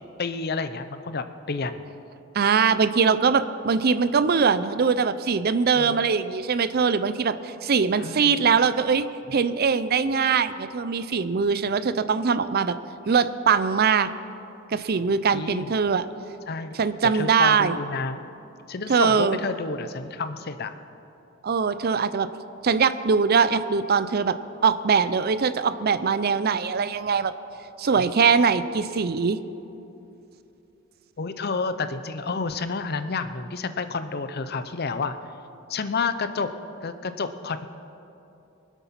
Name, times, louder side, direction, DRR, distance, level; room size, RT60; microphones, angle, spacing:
voice 1, 0.2-1.8 5.7-6.1 8.0-8.4 9.3-9.4 15.3-15.7 16.5-16.8 17.1-18.2 18.7-20.7 28.0-28.1 31.2-35.2 35.7-36.5 36.8-37.7, left 4 dB, 50° left, 11 dB, 0.7 m, -30 dB
voice 2, 2.3-9.1 9.3-12.7 13.1-14.1 14.7-16.1 16.8-17.8 18.9-19.4 21.4-22.3 22.6-24.4 24.6-27.3 27.8-29.4, right 5 dB, 50° right, 13 dB, 0.5 m, -22 dB
23.5 x 8.2 x 5.9 m, 2.9 s
head